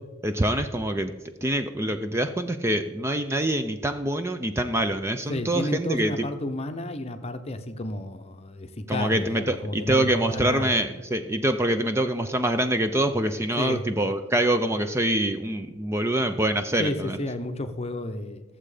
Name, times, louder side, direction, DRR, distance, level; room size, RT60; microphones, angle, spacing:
voice 1, 0.2-1.1 1.4-6.1 8.9-17.2, right 1 dB, 15° right, 8 dB, 0.5 m, -25 dB
voice 2, 5.3-10.8 13.6-13.8 16.8-18.4, left 1 dB, 30° left, 8 dB, 0.7 m, -31 dB
14.0 x 7.5 x 5.0 m, 1.1 s
head